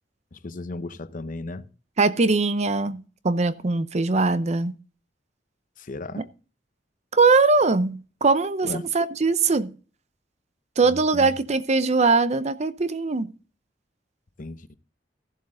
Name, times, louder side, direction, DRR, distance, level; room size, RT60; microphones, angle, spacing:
voice 1, 0.3-1.7 5.8-6.2 8.6-8.9 10.8-11.4 14.4-14.8, left 2 dB, 45° left, 0.7 m, -35 dB
voice 2, 2.0-4.7 6.2-6.3 7.1-8.7 8.9-9.7 10.8-13.3, right 3 dB, 40° right, 0.6 m, -21 dB
15.0 x 7.4 x 3.8 m
head